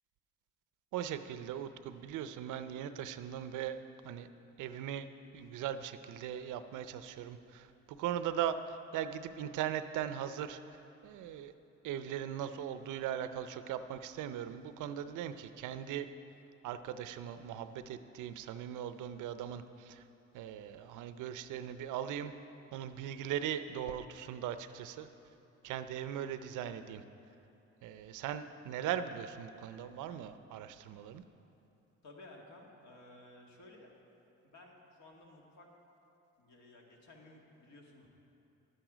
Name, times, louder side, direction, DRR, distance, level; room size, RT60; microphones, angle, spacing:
voice 1, 0.9-4.3 4.6-5.1 5.3-7.7 8.0-10.6 11.0-11.5 11.8-16.1 16.6-20.0 20.3-22.3 22.7-25.1 25.6-27.0 27.8-31.2, right 10 dB, 85° right, 11 dB, 0.6 m, -39 dB
voice 2, 32.0-33.9 34.4-35.7 36.4-38.1, left 2 dB, 65° left, 0 dB, 1.9 m, -56 dB
11.5 x 9.1 x 5.0 m, 2.8 s
cardioid pair, 90°, 30 cm